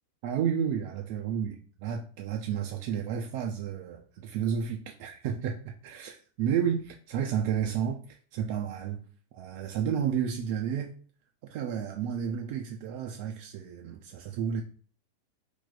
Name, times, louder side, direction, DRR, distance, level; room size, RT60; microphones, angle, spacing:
voice 1, 0.2-9.0 9.3-10.9 11.5-14.6, right 8 dB, 45° right, 0.3 m, -31 dB
2.7 x 2.2 x 3.8 m
figure-of-eight pair, 90°, 0 cm